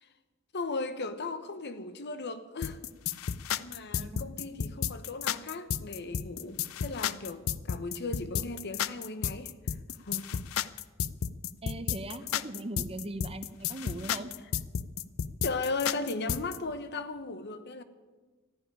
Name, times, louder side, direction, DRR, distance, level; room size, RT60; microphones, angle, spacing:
voice 1, 0.5-2.8 3.6-9.5 10.0-10.4 15.4-17.8, left 3 dB, 55° left, 1.0 m, -36 dB
sound 1, 2.6-16.6, left 8 dB, 80° left, 0.5 m, -32 dB
voice 2, 11.6-14.3, right 2 dB, 30° right, 0.8 m, -39 dB
13.5 x 10.0 x 10.0 m
head